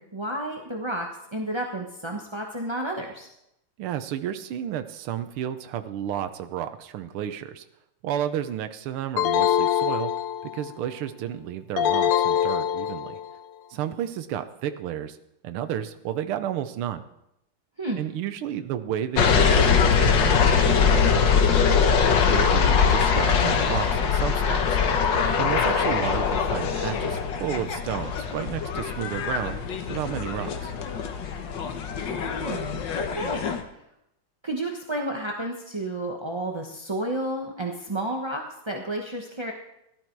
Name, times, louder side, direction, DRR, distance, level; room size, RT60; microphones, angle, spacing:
voice 1, 0.0-3.3 17.8-18.0 32.1-33.4 34.4-39.5, right 1 dB, 20° right, 1 dB, 0.7 m, -31 dB
voice 2, 3.8-7.6 8.0-10.1 10.4-13.2 13.7-15.2 15.4-17.0 18.0-24.8 25.4-29.6 29.9-30.7, right 10 dB, 80° right, 9 dB, 1.7 m, -32 dB
sound 1, 9.2-10.7 11.8-13.3, left 10 dB, 85° left, 1.6 m, -24 dB
sound 2, 19.2-33.6, left 6 dB, 60° left, 1.7 m, -22 dB
15.5 x 12.5 x 4.6 m, 0.82 s
omnidirectional pair, 2.4 m